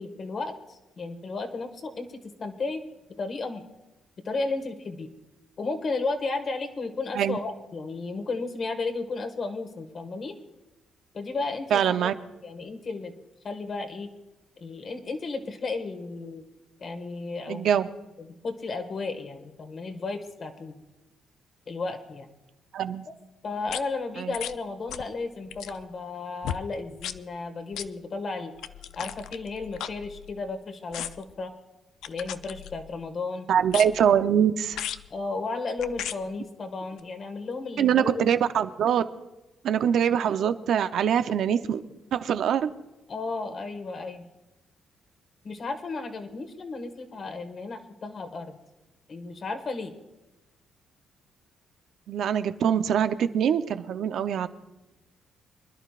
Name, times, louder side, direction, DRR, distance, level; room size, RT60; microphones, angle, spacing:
voice 1, 0.0-2.8 3.2-3.6 4.2-5.1 5.6-10.3 11.1-12.1 12.4-13.1 13.4-14.1 14.6-16.4 16.8-17.7 18.2-20.8 21.7-22.3 23.4-28.5 28.9-31.5 32.1-33.5 35.1-38.3 43.1-44.3 45.4-48.6 49.1-49.9, left 3 dB, 45° left, 6 dB, 1.7 m, -33 dB
voice 2, 11.7-12.1 17.5-17.9 22.7-23.0 24.2-24.3 33.5-34.8 37.8-39.0 39.6-41.8 42.1-42.7 52.1-54.5, right 8 dB, 70° right, 10 dB, 0.7 m, -23 dB
sound 1, 23.7-23.8 24.3-24.6 24.9-25.1 25.4-25.8 26.4-26.6 27.0-27.2 27.7-27.9 28.6-30.5 30.9-31.3 32.0-33.0 33.7-34.1 34.7-35.1 35.8-36.2 37.0-37.1, left 10 dB, 85° left, 0.5 m, -36 dB
26.0 x 11.0 x 2.5 m, 1.0 s
cardioid pair, 90°, 0 cm